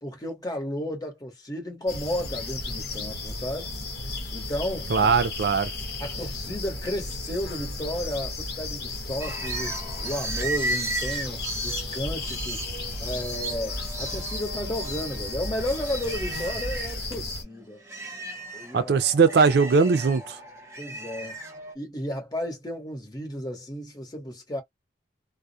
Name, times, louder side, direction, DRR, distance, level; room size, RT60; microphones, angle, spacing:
voice 1, 0.0-3.7 4.3-5.1 6.0-12.6 13.0-17.8 18.5-18.9 20.8-21.4 21.7-24.6, left 1 dB, 20° left, 1.0 m, -33 dB
sound 1, 1.9-17.4, left 2 dB, 60° left, 0.9 m, -34 dB
voice 2, 4.9-5.7 18.7-20.4, right 5 dB, 60° right, 0.4 m, -20 dB
sound 2, 9.2-17.0 17.4-21.7, right 2 dB, 15° right, 0.6 m, -35 dB
2.3 x 2.0 x 2.6 m
head